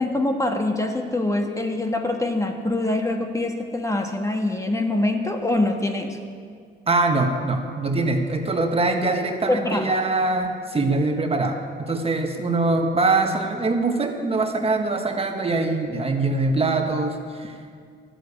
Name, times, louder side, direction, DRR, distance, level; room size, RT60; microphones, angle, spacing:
voice 1, 0.0-6.2 9.5-9.9, left 2 dB, 15° left, 4 dB, 1.3 m, -24 dB
voice 2, 6.9-17.6, right 3 dB, 30° right, 4 dB, 1.5 m, -23 dB
12.0 x 9.9 x 8.4 m, 2.1 s
cardioid pair, 90°, 20 cm